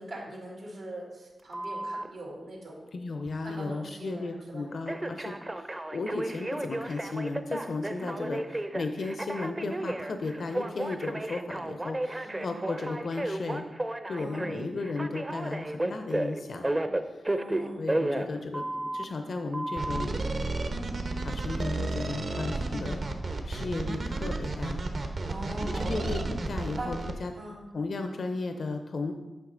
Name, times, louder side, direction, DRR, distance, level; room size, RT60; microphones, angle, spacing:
voice 1, 0.0-2.8 3.4-4.7 8.1-8.3 12.2-12.5 14.2-14.4 17.3-17.8 25.3-26.0 26.8-27.0 27.4-27.6, right 1 dB, 90° right, -3 dB, 2.6 m, -41 dB
Telephone, 1.5-2.1 4.9-19.0 19.5-20.0, right 1 dB, 25° right, 0.5 m, -33 dB
voice 2, 2.9-13.6 14.1-16.7 17.1-17.2 17.8-20.2 21.2-23.0 23.4-24.8 25.8-27.3 27.7-29.1, left 3 dB, 65° left, 6 dB, 0.5 m, -35 dB
sound 1, 19.8-27.1, right 2 dB, 60° right, 0.9 m, -32 dB
8.0 x 5.4 x 3.8 m, 1.1 s
cardioid pair, 55°, 0 cm